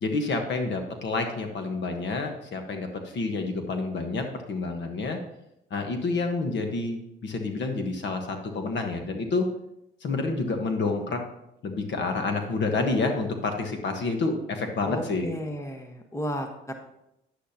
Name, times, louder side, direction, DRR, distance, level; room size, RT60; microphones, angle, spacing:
voice 1, 0.0-5.2 5.7-9.5 10.0-11.2 11.6-15.3, left 3 dB, 65° left, 5 dB, 1.3 m, -28 dB
voice 2, 14.8-16.7, left 1 dB, 15° left, 4 dB, 1.2 m, -34 dB
9.9 x 8.6 x 2.9 m, 0.82 s
cardioid pair, 90°, 20 cm